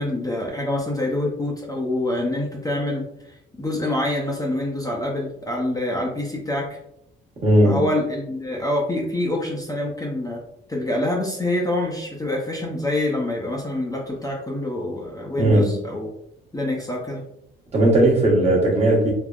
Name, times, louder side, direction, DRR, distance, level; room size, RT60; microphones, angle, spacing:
voice 1, 0.0-6.8 7.6-10.4 10.7-16.1 16.5-17.2, left 1 dB, 15° left, -2 dB, 0.5 m, -26 dB
voice 2, 7.4-7.9 15.4-15.8 17.7-19.1, right 1 dB, 35° right, -3 dB, 1.0 m, -17 dB
3.5 x 2.0 x 2.3 m, 0.80 s
cardioid pair, 90°, 20 cm